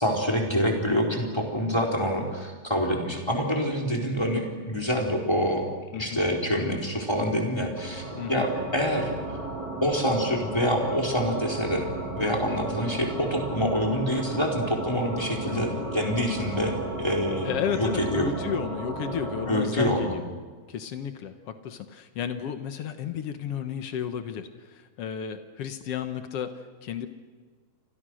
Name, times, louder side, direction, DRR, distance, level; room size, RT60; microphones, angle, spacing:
voice 1, 0.0-5.6 5.9-8.0 8.3-9.1 9.8-11.8 12.2-16.7 17.0-18.3 19.5-20.1, equal, 5° left, 0 dB, 3.9 m, -26 dB
sound 1, 7.7-19.5, right 2 dB, 25° right, 4.1 m, -34 dB
voice 2, 8.1-8.5 15.5-15.8 17.4-20.3 20.7-27.1, left 8 dB, 85° left, 8 dB, 1.3 m, -33 dB
30.0 x 25.5 x 6.4 m, 1.5 s
omnidirectional pair, 4.4 m